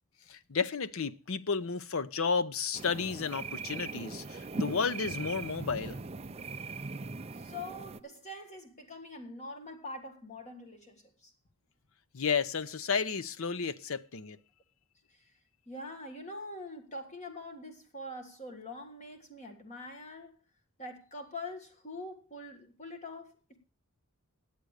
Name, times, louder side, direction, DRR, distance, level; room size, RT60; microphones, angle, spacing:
voice 1, 0.3-6.0 12.1-14.4, left 5 dB, 65° left, 0.7 m, -32 dB
sound 1, 2.7-8.0, right 3 dB, 30° right, 0.5 m, -40 dB
voice 2, 7.3-11.3 15.1-15.3 15.7-20.3 20.8-23.6, left 1 dB, 30° left, 1.6 m, -44 dB
10.5 x 8.5 x 6.5 m
head